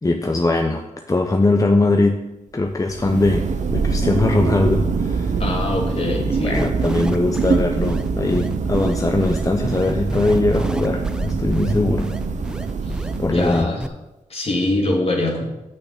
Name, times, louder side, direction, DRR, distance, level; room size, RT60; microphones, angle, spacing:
voice 1, 0.0-2.1 2.5-3.5 3.7-5.4 5.9-12.1 13.2-13.7, left 2 dB, 25° left, 4 dB, 0.8 m, -20 dB
Thunder, 2.7-13.7, right 5 dB, 65° right, 0.8 m, -24 dB
voice 2, 5.4-6.7 12.8-13.0 13.3-13.8 14.3-15.4, left 2 dB, 45° left, 0 dB, 2.4 m, -23 dB
sound 1, 6.5-13.9, right 1 dB, 5° right, 0.6 m, -32 dB
6.4 x 6.1 x 7.1 m, 0.97 s
cardioid pair, 55°, 13 cm